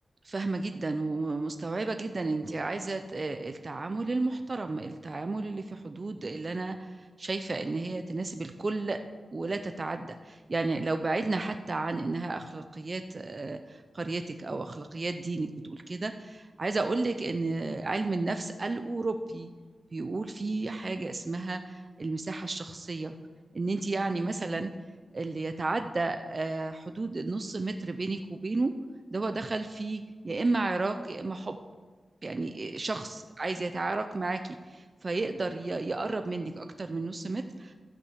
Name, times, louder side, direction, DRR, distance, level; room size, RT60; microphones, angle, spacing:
voice 1, 0.3-9.0 9.3-19.5 19.9-23.1 23.5-24.7 25.1-28.7 29.1-31.6 32.2-37.7, right 3 dB, 35° right, 7 dB, 0.5 m, -32 dB
12.0 x 5.6 x 8.0 m, 1.4 s
wide cardioid pair, 120°, 0 cm